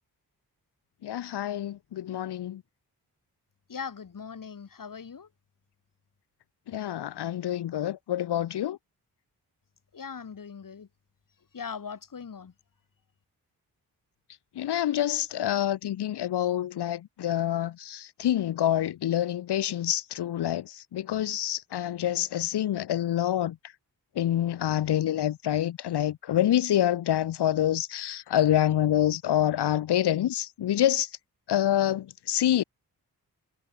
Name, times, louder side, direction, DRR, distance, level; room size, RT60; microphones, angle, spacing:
voice 1, 1.0-2.6 6.7-8.8 14.6-23.6 24.2-31.1 31.5-32.6, left 11 dB, 80° left, 0.9 m, -27 dB
voice 2, 3.7-5.3 9.9-10.9 11.5-12.5, left 6 dB, 55° left, 1.9 m, -40 dB
cardioid pair, 45°, 39 cm